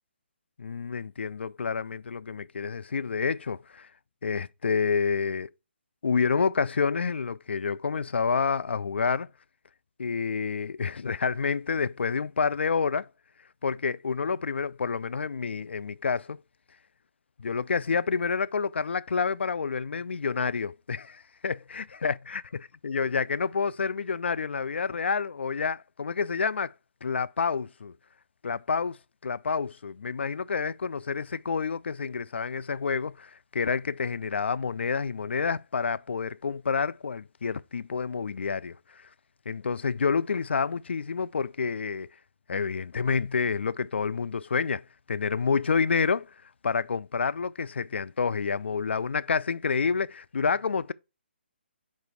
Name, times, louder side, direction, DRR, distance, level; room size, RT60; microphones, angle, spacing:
voice 1, 0.6-3.9 4.2-5.5 6.0-9.3 10.0-13.1 13.6-16.4 17.4-22.4 22.8-26.7 27.0-27.9 28.4-29.0 29.2-39.1 39.5-42.1 42.5-46.3 46.6-50.9, left 5 dB, 75° left, 0.4 m, -28 dB
5.3 x 4.5 x 4.1 m
figure-of-eight pair, 145°, 6 cm